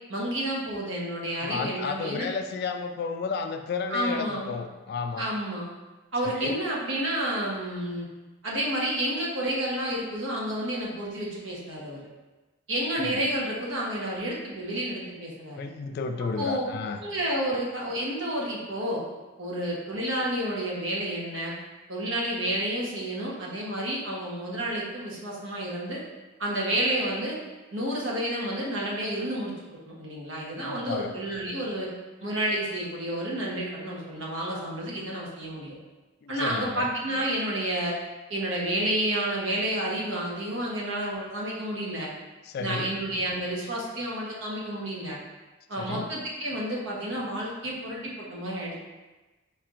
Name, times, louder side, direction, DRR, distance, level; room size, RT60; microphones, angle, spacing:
voice 1, 0.1-2.3 3.9-4.5 5.2-5.7 6.1-8.1 8.4-12.0 12.7-15.7 16.4-16.6 17.0-19.0 19.4-21.5 21.9-26.0 26.4-27.4 27.7-31.9 32.2-35.7 36.3-37.9 38.3-42.1 42.6-45.2 45.7-48.8, right 1 dB, 75° right, -4 dB, 1.0 m, -30 dB
voice 2, 1.3-5.3 6.2-6.5 13.0-13.2 15.6-17.0 30.5-31.1 36.2-36.9 42.4-42.9 45.8-46.1, left 5 dB, 55° left, 7 dB, 0.3 m, -32 dB
4.4 x 4.1 x 2.5 m, 1.2 s
head